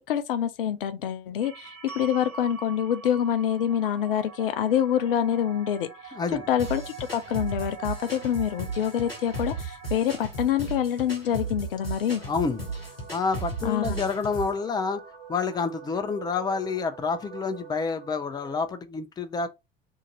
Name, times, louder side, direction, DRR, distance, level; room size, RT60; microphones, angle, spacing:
voice 1, 0.1-6.2 6.5-12.2 13.6-14.0, left 9 dB, 70° left, 0.5 m, -26 dB
sound 1, 1.4-18.7, right 7 dB, 60° right, 1.5 m, -46 dB
sound 2, 1.9-8.1, right 4 dB, 5° right, 1.0 m, -46 dB
voice 2, 6.1-6.4 12.3-12.6 13.1-15.0 15.3-19.5, left 5 dB, 15° left, 0.5 m, -28 dB
sound 3, 6.6-14.6, right 3 dB, 90° left, 0.9 m, -35 dB
2.8 x 2.5 x 3.9 m
figure-of-eight pair, 65°, 29 cm